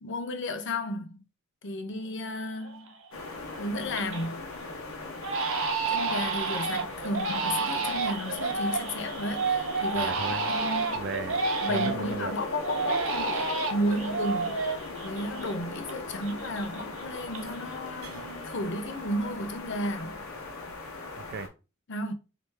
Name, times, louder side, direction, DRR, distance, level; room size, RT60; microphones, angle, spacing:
voice 1, 0.0-1.2 1.6-2.9 3.6-4.5 5.9-10.1 10.5-11.0 11.6-14.6 15.0-20.2 21.9-22.1, left 1 dB, 60° left, 0.7 m, -33 dB
Crying sobbing, 2.1-2.2 2.6-3.1 3.5-4.3 4.6-4.8 5.2-12.2 12.6-16.0 16.2-17.7 18.0-18.6, right 4 dB, 65° right, 0.8 m, -30 dB
sound 1, 3.1-21.5, left 3 dB, 85° left, 1.2 m, -39 dB
voice 2, 10.0-10.5 10.9-11.4 11.7-12.3 21.1-21.5, right 5 dB, 50° right, 0.4 m, -36 dB
3.4 x 3.0 x 4.5 m
head